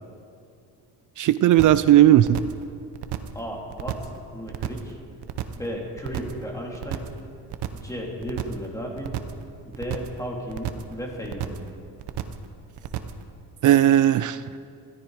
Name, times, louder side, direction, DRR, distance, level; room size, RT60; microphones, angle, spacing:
voice 1, 1.2-2.4 13.6-14.4, right 12 dB, 50° right, 14 dB, 0.4 m, -16 dB
sound 1, 1.6-1.9 2.2-2.6 2.9-3.4 3.7-4.2 4.5-4.9 5.2-5.7 6.0-6.4 6.7-7.2 7.5-7.9 8.2-8.7 9.0-9.4 9.7-10.2 10.5-10.9 11.2-11.7 12.0-12.5 12.8-13.2, right 11 dB, 75° right, 1.1 m, -32 dB
voice 2, 3.3-5.0 5.5-7.1 7.7-9.2 9.6-11.5, equal, 10° left, -1 dB, 2.8 m, -34 dB
20.5 x 14.0 x 4.8 m, 2.4 s
cardioid pair, 140°, 41 cm